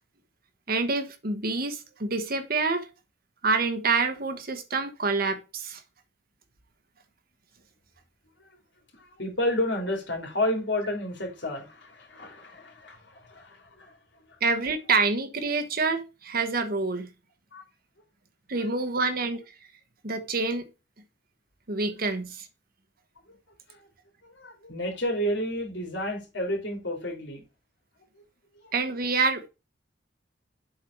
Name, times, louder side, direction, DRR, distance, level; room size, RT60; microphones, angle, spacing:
voice 1, 0.7-2.9 3.4-5.8 14.4-17.1 18.5-19.4 20.0-20.7 21.7-22.5 28.7-29.4, right 4 dB, 55° right, 1.3 m, -27 dB
voice 2, 9.2-13.9 17.5-17.6 24.2-27.4, left 1 dB, 80° left, 3.3 m, -31 dB
7.4 x 4.7 x 4.7 m
head